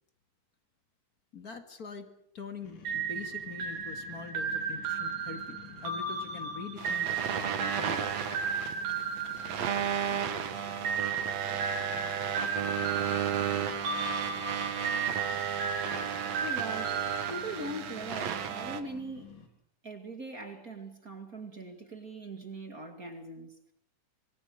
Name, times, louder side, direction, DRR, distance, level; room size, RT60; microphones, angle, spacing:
voice 1, 1.3-2.1 2.3-8.1, left 4 dB, 35° left, 7 dB, 2.1 m, -44 dB
sound 1, 2.6-19.5, left 6 dB, 85° left, 5.0 m, -52 dB
sound 2, 2.9-10.3 10.9-18.1, right 5 dB, 75° right, 4.5 m, -35 dB
sound 3, 6.8-18.8, right 8 dB, 60° right, 2.6 m, -33 dB
voice 2, 16.4-17.0 17.3-19.4 19.8-23.7, right 2 dB, 30° right, 5 dB, 2.3 m, -41 dB
25.5 x 23.5 x 6.4 m, 0.69 s
omnidirectional pair, 3.7 m